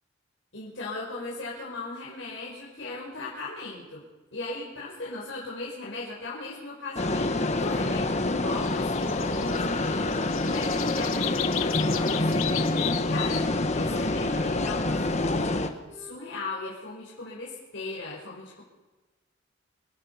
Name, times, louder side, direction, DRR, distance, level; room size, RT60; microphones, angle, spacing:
voice 1, 0.5-4.0 4.3-12.6 13.1-13.5 13.7-18.6, left 3 dB, 65° left, -5 dB, 5.2 m, -38 dB
sound 1, 7.0-15.7, left 2 dB, 35° left, 1.3 m, -27 dB
sound 2, 8.5-13.5, left 12 dB, 85° left, 1.1 m, -35 dB
Wind instrument woodwind instrument, 9.0-12.2 12.7-15.1 15.4-16.7, right 1 dB, 10° right, 2.2 m, -46 dB
27.5 x 16.5 x 5.8 m, 1.2 s
head